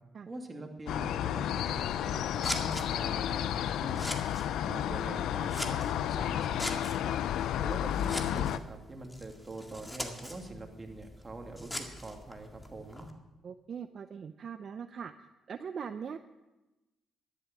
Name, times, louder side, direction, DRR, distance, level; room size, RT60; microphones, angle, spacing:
voice 1, 0.3-4.1 4.6-7.2 7.6-13.1, right 2 dB, 25° right, 2 dB, 2.6 m, -44 dB
sound 1, 0.9-8.6, left 11 dB, 75° left, 0.4 m, -32 dB
Scissors, 1.7-13.1, left 1 dB, 15° left, 1.9 m, -43 dB
voice 2, 13.4-15.1 15.5-16.2, right 7 dB, 55° right, 10 dB, 0.5 m, -41 dB
12.5 x 11.5 x 6.2 m, 1.1 s
supercardioid pair, 65°, 0 cm